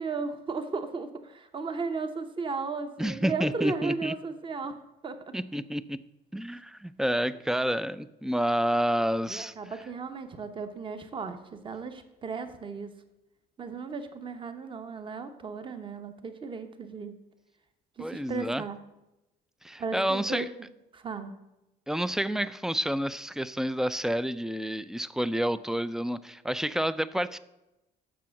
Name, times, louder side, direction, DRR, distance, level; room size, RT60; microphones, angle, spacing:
voice 1, 0.0-4.8 5.0-5.3 9.3-12.9 13.6-17.1 18.0-18.8 19.8-20.5 20.9-21.3, right 4 dB, 30° right, 8 dB, 1.0 m, -35 dB
voice 2, 3.0-4.1 5.3-6.0 6.3-9.5 18.0-18.6 19.6-20.5 21.9-27.4, equal, 5° right, 16 dB, 0.3 m, -29 dB
7.5 x 6.2 x 7.0 m, 0.95 s
cardioid pair, 110°, 17 cm